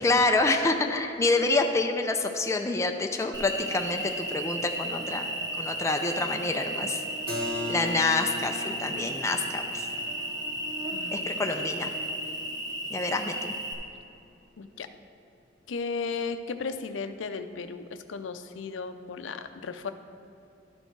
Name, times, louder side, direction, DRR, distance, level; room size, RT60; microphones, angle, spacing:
voice 1, 0.0-5.3 5.6-7.0 7.7-9.9 11.1-11.9 12.9-13.5, left 3 dB, 15° left, 4 dB, 0.4 m, -27 dB
Cricket, 3.3-13.7, right 1 dB, 20° right, 0.8 m, -34 dB
Keyboard (musical), 7.3-12.9, left 2 dB, 55° right, 0.9 m, -40 dB
voice 2, 10.9-11.4 14.6-14.9 15.7-17.8 18.1-19.9, left 4 dB, 90° left, 10 dB, 0.5 m, -35 dB
12.5 x 4.4 x 4.5 m, 2.7 s
head